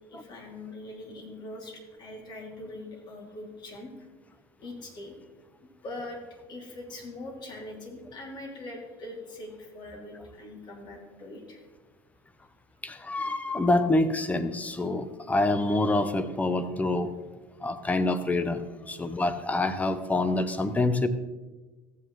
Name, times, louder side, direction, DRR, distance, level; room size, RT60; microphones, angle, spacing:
voice 1, 0.1-3.9 4.6-5.3 5.6-6.2 6.5-11.6 18.5-19.1, left 2 dB, 40° left, 0 dB, 2.8 m, -42 dB
voice 2, 12.8-17.1 17.6-21.1, left 2 dB, 15° left, 11 dB, 0.7 m, -26 dB
14.0 x 9.0 x 3.2 m, 1.2 s
supercardioid pair, 120°, 12 cm